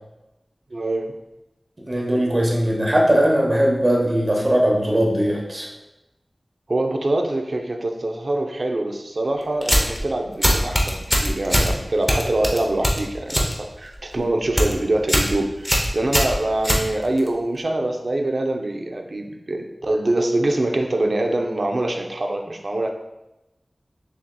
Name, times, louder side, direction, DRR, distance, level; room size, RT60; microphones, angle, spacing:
voice 1, 0.7-1.1 6.7-22.9, right 2 dB, 65° right, 4 dB, 0.5 m, -24 dB
voice 2, 1.9-5.7, equal, 40° right, -2 dB, 1.0 m, -19 dB
sound 1, 9.6-10.0 10.4-11.7 12.1-13.5 13.9-14.2 14.4-14.7 15.1-15.3 15.6-17.3, equal, 15° left, 0.7 m, -20 dB
6.4 x 2.8 x 2.2 m, 0.99 s
wide cardioid pair, 60°, 0 cm